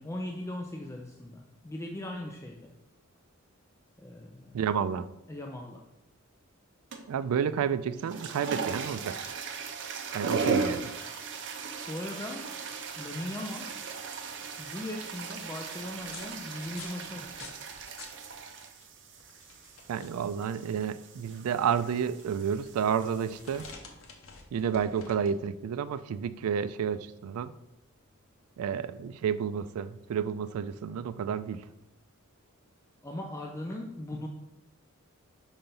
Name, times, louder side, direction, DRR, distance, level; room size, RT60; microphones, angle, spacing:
voice 1, 0.0-2.7 4.0-4.6 5.3-5.9 11.5-12.5 13.0-13.8 14.6-17.6 33.0-34.3, left 1 dB, 15° left, 1 dB, 0.4 m, -39 dB
voice 2, 4.5-5.1 7.1-9.3 10.1-10.9 19.9-23.7 24.5-27.5 28.6-31.7, right 7 dB, 90° right, 14 dB, 0.3 m, -30 dB
sound 1, 6.9-7.2 7.9-23.7, right 5 dB, 55° right, 0.7 m, -37 dB
sound 2, 14.0-28.5, left 4 dB, 65° left, 1.0 m, -53 dB
5.7 x 3.9 x 5.4 m, 0.90 s
head